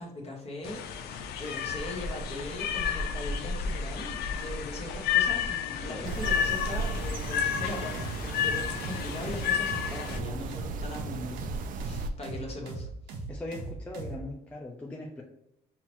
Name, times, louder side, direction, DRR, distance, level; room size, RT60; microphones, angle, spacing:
voice 1, 0.0-13.2, left 1 dB, 35° left, 0 dB, 1.1 m, -40 dB
sound 1, 0.6-10.2, left 7 dB, 70° left, 0.4 m, -31 dB
sound 2, 6.0-12.1, right 4 dB, 55° right, 0.4 m, -36 dB
sound 3, 7.5-14.2, right 3 dB, 85° right, 0.8 m, -39 dB
voice 2, 13.3-15.2, left 1 dB, 10° left, -2 dB, 0.5 m, -40 dB
5.5 x 2.1 x 3.0 m, 0.82 s
cardioid pair, 110°, 17 cm